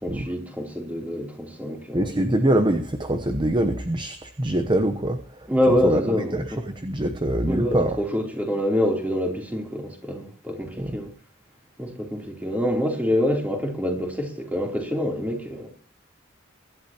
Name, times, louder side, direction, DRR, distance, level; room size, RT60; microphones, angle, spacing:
voice 1, 0.0-2.1 5.5-6.6 7.5-11.1 11.8-15.7, left 1 dB, 10° right, 3.2 m, -26 dB
voice 2, 1.9-5.2 5.7-6.0 6.3-8.0 10.8-10.9, right 1 dB, 25° right, 0.9 m, -24 dB
23.5 x 11.5 x 3.0 m
head